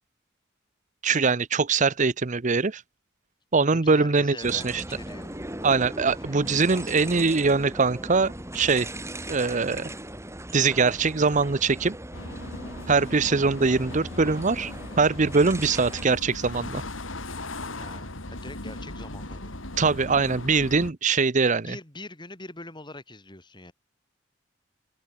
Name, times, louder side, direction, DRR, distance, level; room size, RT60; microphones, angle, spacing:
voice 1, 1.0-2.8 3.5-4.8 5.6-8.9 9.3-9.9 10.5-12.0 12.9-14.7 15.0-16.8 19.8-21.8, right 4 dB, 40° right, 0.8 m, -22 dB
voice 2, 3.6-5.4 5.8-7.1 17.8-19.5 21.4-23.7, left 2 dB, 25° left, 5.9 m, -44 dB
sound 1, 4.4-16.1, right 1 dB, 15° right, 6.7 m, -38 dB
sound 2, 12.1-20.9, left 2 dB, 85° left, 4.8 m, -38 dB
head